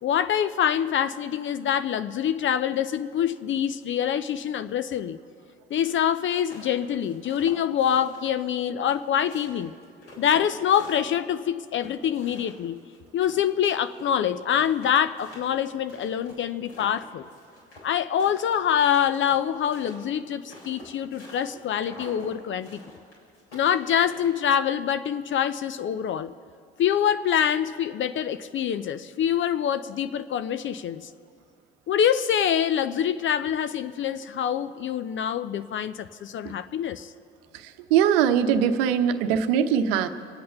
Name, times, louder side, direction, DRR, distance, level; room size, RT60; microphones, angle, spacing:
voice 1, 0.0-5.2 5.7-9.7 10.2-12.8 13.1-17.3 17.8-22.8 23.5-26.3 26.8-31.1 31.9-37.1, left 9 dB, 40° left, 13 dB, 0.5 m, -25 dB
sound 1, 6.4-8.6 8.9-11.4 11.8-14.0 14.3-14.4 14.6-17.9 18.2-21.5 21.8-22.3 22.6-24.7, left 1 dB, 85° left, 4.1 m, -47 dB
voice 2, 37.5-40.1, right 8 dB, 70° right, 10 dB, 0.9 m, -22 dB
24.5 x 8.5 x 5.6 m, 2.2 s
figure-of-eight pair, 55°, 30 cm